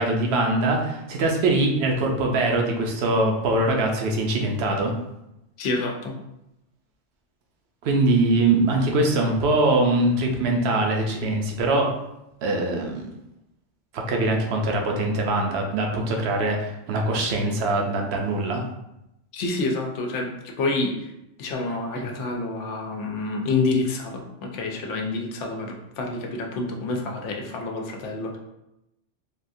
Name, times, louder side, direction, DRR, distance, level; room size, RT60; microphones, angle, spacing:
voice 1, 0.0-4.9 7.8-11.9 12.4-13.1 13.9-18.6, right 2 dB, 70° right, 2 dB, 0.8 m, -22 dB
voice 2, 5.6-6.2 19.3-21.1 21.4-28.4, left 3 dB, 85° left, 1 dB, 0.9 m, -28 dB
3.4 x 2.3 x 2.5 m, 0.88 s
omnidirectional pair, 1.2 m